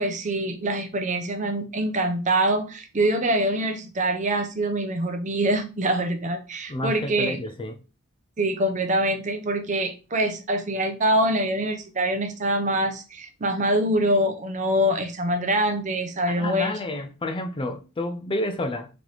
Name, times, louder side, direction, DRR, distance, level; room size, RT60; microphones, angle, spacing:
voice 1, 0.0-7.4 8.4-16.8, right 1 dB, 35° right, 0.6 m, -24 dB
voice 2, 6.7-7.8 16.3-18.9, left 1 dB, 25° left, 0.3 m, -30 dB
3.2 x 2.9 x 3.9 m
head